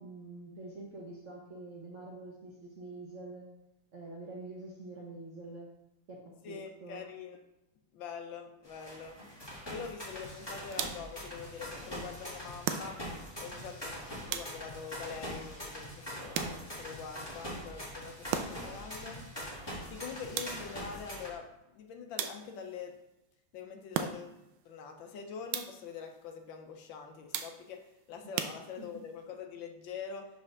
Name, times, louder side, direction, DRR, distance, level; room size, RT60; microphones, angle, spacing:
voice 1, 0.0-3.5 3.9-5.7 6.1-7.0 28.8-28.9, right 2 dB, 50° right, -2 dB, 1.0 m, -46 dB
voice 2, 6.4-7.4 7.9-9.2 9.7-13.0 13.4-13.9 14.3-19.2 19.9-21.5 21.7-22.9 23.5-24.4 24.6-27.8 28.1-30.3, left 6 dB, 70° left, 4 dB, 1.4 m, -44 dB
sound 1, 8.6-21.3, equal, 15° left, 1.6 m, -43 dB
sound 2, 10.7-11.2 12.6-13.3 14.3-14.9 16.3-16.9 18.3-18.8 20.4-20.9 22.2-22.7 23.9-24.5 25.5-26.0 27.3-27.8 28.4-29.1, right 9 dB, 85° right, 1.4 m, -38 dB
5.1 x 4.3 x 5.8 m, 0.90 s
omnidirectional pair, 2.2 m